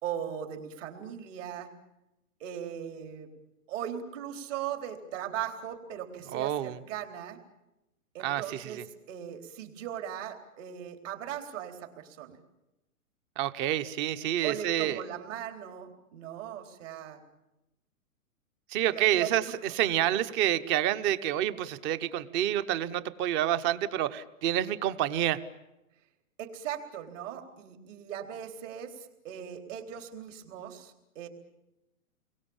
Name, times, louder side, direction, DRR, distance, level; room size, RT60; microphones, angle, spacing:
voice 1, 0.0-1.7 2.4-3.3 3.7-7.4 8.1-12.4 14.4-17.2 18.9-19.3 26.4-31.3, right 10 dB, 55° right, 4 dB, 4.1 m, -39 dB
voice 2, 6.3-6.8 8.2-8.8 13.4-15.0 18.7-19.4 19.7-25.4, right 12 dB, 25° right, 14 dB, 1.0 m, -28 dB
30.0 x 23.0 x 7.2 m, 0.95 s
hypercardioid pair, 135°, 44 cm